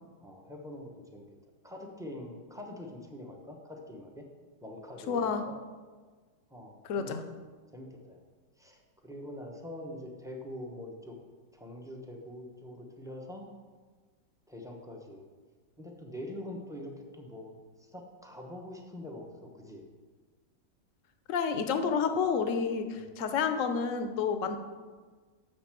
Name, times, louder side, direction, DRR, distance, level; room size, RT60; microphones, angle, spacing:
voice 1, 0.2-1.2 1.6-4.3 4.6-5.6 6.5-7.4 7.7-8.2 8.6-11.2 11.5-13.5 14.5-15.2 15.8-19.8 23.0-23.1, left 1 dB, 5° right, 1 dB, 0.4 m, -44 dB
voice 2, 5.1-5.4 6.8-7.2 21.3-24.6, left 6 dB, 60° left, 8 dB, 0.8 m, -29 dB
6.9 x 6.6 x 7.5 m, 1.4 s
omnidirectional pair, 2.1 m